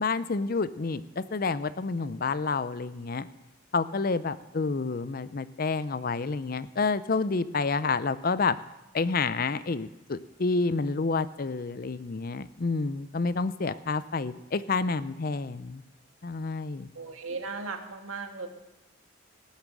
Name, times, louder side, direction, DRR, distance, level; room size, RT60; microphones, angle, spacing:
voice 1, 0.0-3.3 3.7-8.6 8.9-15.8 16.2-16.9, left 4 dB, 45° left, 15 dB, 0.5 m, -29 dB
voice 2, 16.9-18.5, right 4 dB, 85° right, 5 dB, 1.6 m, -37 dB
18.5 x 7.3 x 6.1 m, 0.99 s
head